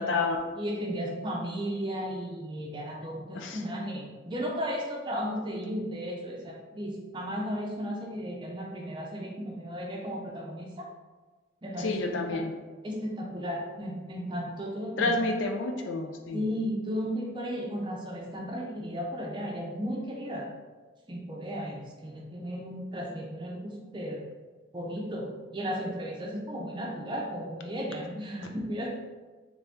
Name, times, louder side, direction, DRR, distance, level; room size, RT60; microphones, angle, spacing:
voice 1, 0.0-0.4 3.3-3.6 11.8-12.5 15.0-16.5, left 3 dB, 75° left, 4 dB, 0.4 m, -29 dB
voice 2, 0.5-10.9 11.6-11.9 12.3-12.4 12.8-15.6 16.3-20.5 21.1-24.2 24.7-28.9, equal, 25° right, -2 dB, 0.5 m, -35 dB
3.2 x 2.6 x 3.4 m, 1.3 s
head